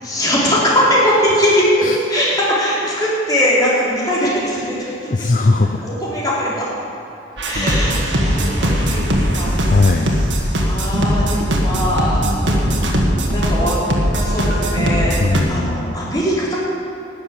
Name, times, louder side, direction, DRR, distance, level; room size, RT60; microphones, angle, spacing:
voice 1, 0.0-1.7 2.1-4.9 5.8-6.6 7.4-9.5 10.6-13.8 14.1-15.2 15.5-16.6, equal, 20° left, -7 dB, 4.0 m, -20 dB
voice 2, 5.1-5.8 7.3-7.7 9.6-10.2 15.2-16.0, left 3 dB, 45° left, 4 dB, 0.5 m, -19 dB
sound 1, 7.4-15.4, equal, 75° right, 1.9 m, -19 dB
13.0 x 7.1 x 9.9 m, 2.7 s
head